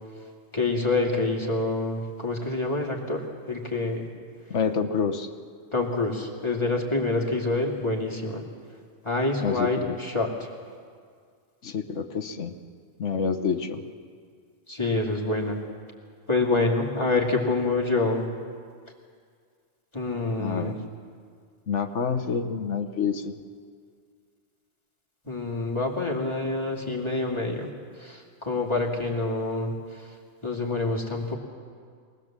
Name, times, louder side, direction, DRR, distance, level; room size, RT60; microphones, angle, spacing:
voice 1, 0.5-3.2 3.5-4.1 5.7-8.4 9.0-10.5 14.7-15.6 16.3-18.3 19.9-20.7 25.3-27.7 28.0-30.1 30.4-31.4, left 2 dB, 20° left, -1 dB, 2.5 m, -27 dB
voice 2, 4.5-5.3 9.4-10.0 11.6-12.5 13.0-13.8 20.4-20.9 21.7-23.4, left 6 dB, 70° left, 7 dB, 1.4 m, -28 dB
23.5 x 19.0 x 7.4 m, 2.1 s
omnidirectional pair, 1.3 m